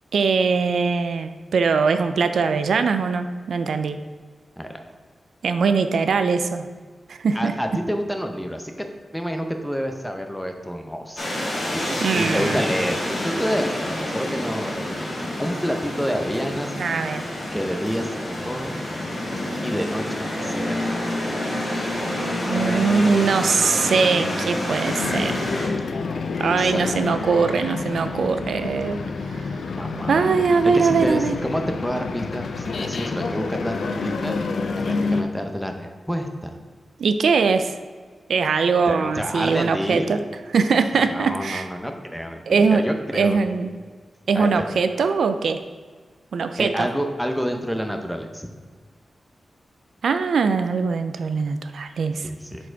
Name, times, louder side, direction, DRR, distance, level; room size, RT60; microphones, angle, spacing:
voice 1, 0.1-4.0 5.4-6.7 7.1-7.5 12.0-12.6 16.8-17.2 22.5-25.4 26.4-29.0 29.3-29.4 30.1-31.4 37.0-37.8 38.3-40.2 40.5-41.7 42.5-43.7 44.3-45.6 46.3-46.9 50.0-52.3, right 5 dB, 80° right, 9 dB, 0.4 m, -21 dB
voice 2, 7.3-8.9 9.1-15.1 15.4-16.7 17.5-18.8 19.6-21.0 26.1-27.0 29.7-30.2 30.7-34.4 34.7-36.6 38.9-40.1 41.0-43.5 44.3-44.7 46.6-48.5 52.2-52.7, equal, ahead, 4 dB, 0.6 m, -28 dB
sound 1, 11.2-25.7, left 1 dB, 40° left, 1.7 m, -28 dB
sound 2, 24.8-35.2, left 4 dB, 70° left, 0.5 m, -28 dB
7.3 x 4.4 x 4.5 m, 1.5 s
wide cardioid pair, 165°, 0 cm